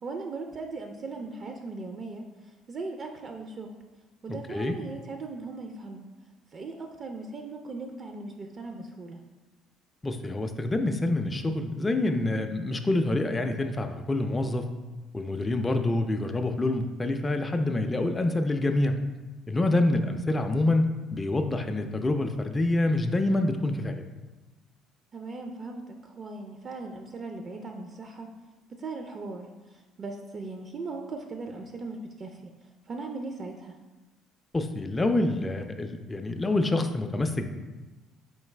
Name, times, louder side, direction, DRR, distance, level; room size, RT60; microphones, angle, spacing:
voice 1, 0.0-3.8 4.2-6.1 6.5-9.2 19.9-20.1 25.1-28.3 28.8-33.8, right 3 dB, 45° right, 4 dB, 0.4 m, -39 dB
voice 2, 10.0-14.7 15.1-19.0 19.5-24.0 34.5-37.5, left 2 dB, 20° left, 5 dB, 0.3 m, -26 dB
4.4 x 3.2 x 3.2 m, 1.2 s
supercardioid pair, 70°, 0 cm